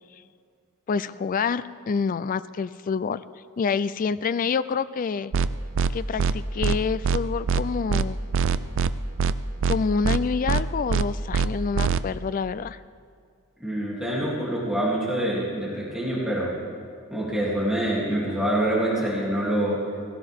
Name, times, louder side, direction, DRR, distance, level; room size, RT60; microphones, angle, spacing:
voice 1, 0.9-3.2 3.6-5.3 5.9-8.2 9.7-12.8, left 5 dB, 40° left, 15 dB, 0.3 m, -27 dB
sound 1, 5.3-5.5 5.8-5.9 6.2-6.3 6.6-6.8 7.0-7.2 7.5-7.6 7.9-8.0 8.3-8.9 9.2-9.3 9.6-9.8 10.0-10.2 10.5-10.6 10.9-11.0 11.3-11.5 11.8-12.0, right 5 dB, 60° right, 0.4 m, -22 dB
voice 2, 13.6-16.5 17.1-19.8, right 1 dB, 5° right, -7 dB, 2.9 m, -26 dB
18.0 x 17.0 x 3.6 m, 2.2 s
head